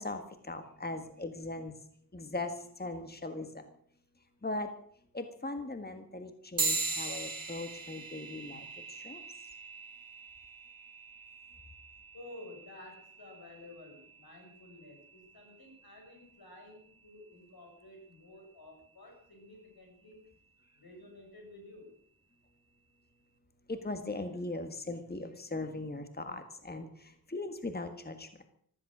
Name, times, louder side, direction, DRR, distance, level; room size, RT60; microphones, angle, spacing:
voice 1, 0.0-1.8 2.1-3.6 4.4-4.7 5.1-9.2 23.7-28.3, left 2 dB, 25° left, 8 dB, 1.7 m, -39 dB
sound 1, 6.6-16.4, right 3 dB, 70° right, 2.1 m, -40 dB
voice 2, 12.1-20.2 20.8-22.0, left 1 dB, 80° left, 2 dB, 6.4 m, -52 dB
15.0 x 14.0 x 6.2 m, 0.63 s
wide cardioid pair, 65°, 36 cm